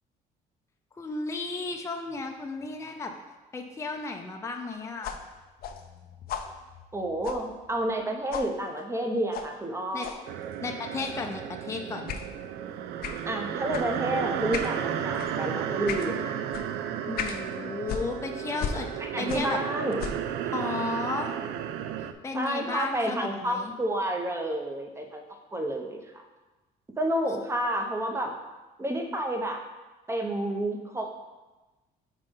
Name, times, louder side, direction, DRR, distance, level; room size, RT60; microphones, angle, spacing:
voice 1, 1.0-3.1 3.5-5.2 9.9-10.1 10.6-12.1 17.1-18.9 19.2-19.6 20.4-21.3 22.2-23.7, left 3 dB, 15° left, 3 dB, 0.6 m, -34 dB
sound 1, 5.0-8.0 8.3-8.5 9.3-9.5 10.0-10.2 11.0-11.3 12.1-12.3 13.0-13.2 13.7-13.9 14.5-14.8 15.2-15.4 15.9-16.1 16.5-16.7 17.2-17.4 17.9-19.6 19.9-20.3, left 7 dB, 65° left, 0.6 m, -37 dB
voice 2, 6.9-10.2 13.3-16.4 19.0-20.0 22.3-25.2 25.5-26.2 27.0-28.3 28.8-29.6 30.1-31.1, right 1 dB, 15° right, 3 dB, 0.8 m, -30 dB
sound 2, 10.3-22.1, right 9 dB, 80° right, 0.4 m, -33 dB
5.4 x 4.0 x 5.3 m, 1.1 s
cardioid pair, 110°, 17 cm